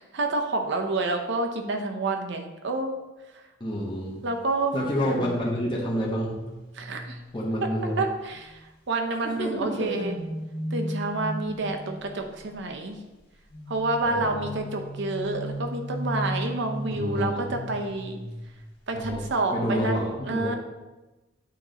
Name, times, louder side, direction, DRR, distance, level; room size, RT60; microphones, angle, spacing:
voice 1, 0.0-2.9 3.3-3.4 4.2-4.7 6.7-7.2 8.0-8.6 8.9-10.2 10.7-13.0 13.7-18.2 18.9-20.5, right 2 dB, 65° right, 4 dB, 0.7 m, -28 dB
voice 2, 3.6-4.1 4.7-6.3 7.3-7.9 9.2-10.0 14.0-14.4 16.9-17.5 18.9-19.2 19.5-20.6, equal, 25° left, -5 dB, 1.0 m, -28 dB
sound 1, 5.0-8.6 9.2-12.5 13.5-18.7 19.0-19.3, equal, 50° left, 1.8 m, -37 dB
8.4 x 3.1 x 3.9 m, 1.1 s
head